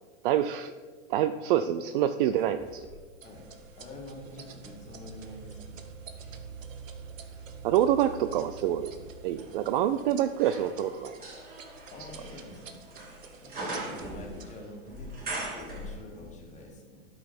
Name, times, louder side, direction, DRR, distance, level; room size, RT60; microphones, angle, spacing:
voice 1, 0.2-0.7 1.1-2.9 7.6-8.9 9.2-11.2, right 11 dB, 45° right, 10 dB, 0.4 m, -26 dB
sound 1, 2.3-4.5 5.1-16.4 16.7-16.8, right 1 dB, 25° right, 2.5 m, -43 dB
sound 2, 3.2-14.6, right 5 dB, 85° right, 1.1 m, -51 dB
voice 2, 3.8-5.8 9.5-9.6 11.9-12.9 13.4-17.1, left 1 dB, 20° left, 0 dB, 1.8 m, -46 dB
sound 3, 3.8-9.2, right 6 dB, ahead, 1.3 m, -46 dB
12.0 x 5.7 x 4.3 m, 1.5 s
hypercardioid pair, 120°, 38 cm